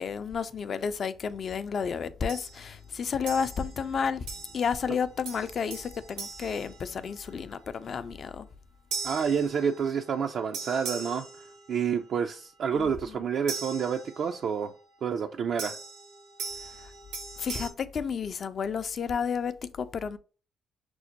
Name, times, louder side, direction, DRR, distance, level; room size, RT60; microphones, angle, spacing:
voice 1, 0.0-4.3 4.5-8.5 12.8-13.2 17.4-20.2, left 6 dB, 55° left, 0.4 m, -31 dB
sound 1, 2.3-2.7 3.3-3.8 4.3-4.8 5.2-7.4 8.9-10.1 10.5-12.0 13.5-14.5 15.6-17.7, right 4 dB, 85° right, 0.8 m, -40 dB
voice 2, 9.0-14.7 15.0-15.8, right 7 dB, 65° right, 0.3 m, -29 dB
6.0 x 2.1 x 2.8 m
hypercardioid pair, 50°, 0 cm